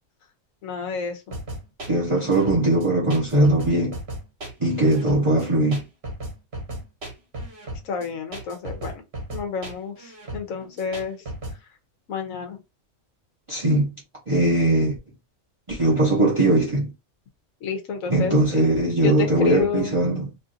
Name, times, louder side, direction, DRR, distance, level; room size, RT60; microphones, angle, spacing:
voice 1, 0.6-1.4 7.8-9.0 9.3-11.2 12.1-12.6 17.6-18.6 19.0-19.9, left 5 dB, 80° left, 1.2 m, -29 dB
sound 1, 1.3-11.6, right 1 dB, 50° right, 1.3 m, -36 dB
voice 2, 1.9-3.9 4.6-5.8 13.5-13.9 14.3-15.0 15.7-16.9 18.1-20.3, right 1 dB, 25° right, 0.9 m, -20 dB
3.1 x 2.5 x 2.6 m
omnidirectional pair, 1.4 m